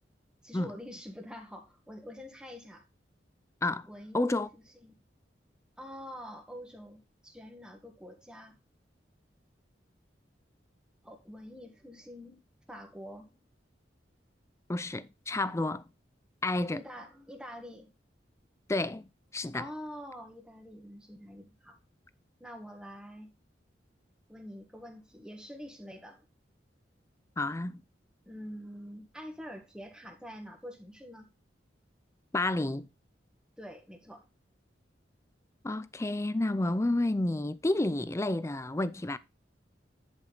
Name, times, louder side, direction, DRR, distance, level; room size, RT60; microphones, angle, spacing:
voice 1, 0.4-2.8 3.9-5.0 5.8-8.6 11.0-12.4 12.7-13.4 16.7-17.9 19.5-21.8 22.4-23.3 24.3-26.2 28.2-31.3 33.6-34.3, equal, 5° right, 1.5 m, -46 dB
voice 2, 4.1-4.5 14.7-15.8 16.4-16.8 18.7-19.1 19.3-19.6 27.4-27.8 32.3-32.9 35.6-39.2, left 2 dB, 15° left, 0.5 m, -30 dB
10.5 x 5.3 x 3.9 m
head